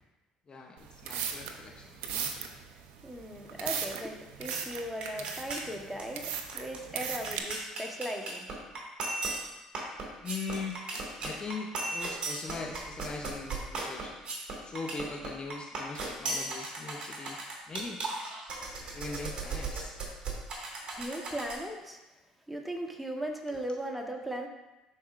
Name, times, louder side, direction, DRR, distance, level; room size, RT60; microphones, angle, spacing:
voice 1, 0.5-2.3 10.2-10.9 11.2-14.1 14.6-18.0 18.9-20.0 23.5-23.6, left 4 dB, 35° left, 2 dB, 0.8 m, -40 dB
sound 1, 0.8-7.4, right 8 dB, 75° right, 0.7 m, -37 dB
voice 2, 2.7-8.5 21.0-22.0 22.5-24.5, right 1 dB, 5° right, 2 dB, 1.2 m, -38 dB
sound 2, 4.5-4.7 5.0-5.7 6.0-6.1 6.3-21.6, right 2 dB, 40° right, 2.1 m, -37 dB
11.5 x 4.3 x 2.5 m, 1.0 s
hypercardioid pair, 70°, 3 cm